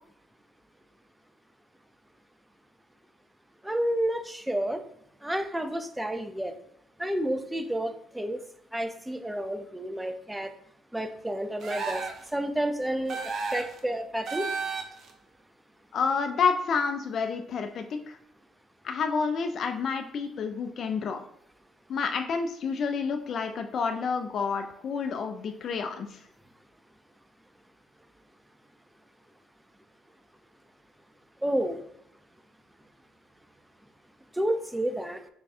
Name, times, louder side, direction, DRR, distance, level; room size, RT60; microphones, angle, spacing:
voice 1, 3.6-4.8 5.2-6.5 7.0-8.4 8.7-10.5 10.9-14.5 31.4-31.8 34.3-35.2, right 1 dB, 10° right, 8 dB, 0.5 m, -30 dB
sound 1, 11.6-12.3 13.1-13.8 14.3-15.1, right 4 dB, 60° right, 0.6 m, -33 dB
voice 2, 15.9-18.2 18.8-21.2 21.9-26.2, left 5 dB, 55° left, 6 dB, 0.3 m, -29 dB
3.4 x 2.3 x 4.1 m, 0.72 s
supercardioid pair, 75°, 0 cm